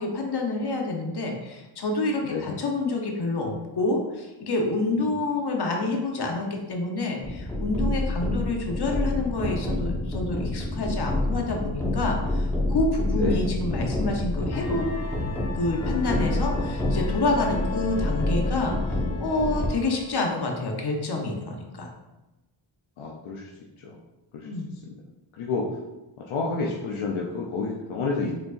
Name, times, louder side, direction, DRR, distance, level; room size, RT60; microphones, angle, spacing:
voice 1, 0.0-14.9 15.5-18.8 19.2-21.9 24.4-24.7, left 2 dB, 55° left, 1 dB, 1.0 m, -28 dB
voice 2, 2.2-2.6 5.0-5.2 13.1-13.4 17.6-17.9 23.0-23.5 23.8-24.0 24.3-24.5 24.9-25.0 25.4-25.7 26.3-28.3, left 4 dB, 80° left, -2 dB, 0.7 m, -30 dB
sound 1, 7.2-19.7, left 1 dB, 5° left, 1.1 m, -28 dB
sound 2, 14.5-20.7, left 2 dB, 30° left, 0.6 m, -38 dB
4.3 x 4.0 x 2.5 m, 1.0 s
cardioid pair, 50°, 48 cm